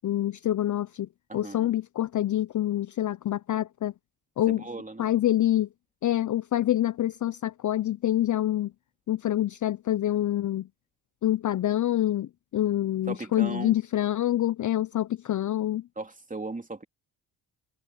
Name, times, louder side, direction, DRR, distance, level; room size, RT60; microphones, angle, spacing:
voice 1, 0.0-3.9 4.4-4.6 5.0-5.7 6.0-8.7 9.1-10.7 11.2-15.8, left 13 dB, 40° left, 0.6 m, -26 dB
voice 2, 1.3-1.7 4.5-5.1 13.1-13.8 16.0-16.8, right 3 dB, 15° right, 3.0 m, -37 dB
supercardioid pair, 65°, 46 cm